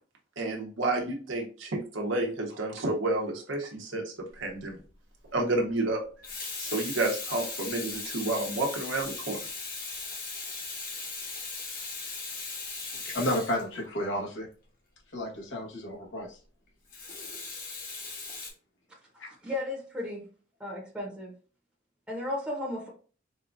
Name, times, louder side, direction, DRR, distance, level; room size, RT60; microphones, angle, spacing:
voice 1, 0.4-4.8 5.3-6.0 6.6-9.4, right 2 dB, 80° right, 1.0 m, -30 dB
Water tap faucet / Sink (filling or washing), 4.5-4.7 6.0-14.2 16.9-18.5, left 4 dB, 45° left, 1.0 m, -38 dB
voice 2, 13.0-14.5 15.1-16.4, left 1 dB, 75° left, 1.2 m, -32 dB
voice 3, 19.2-20.3 20.6-21.3 22.1-22.9, left 1 dB, 5° right, 0.9 m, -35 dB
4.2 x 2.4 x 2.5 m
head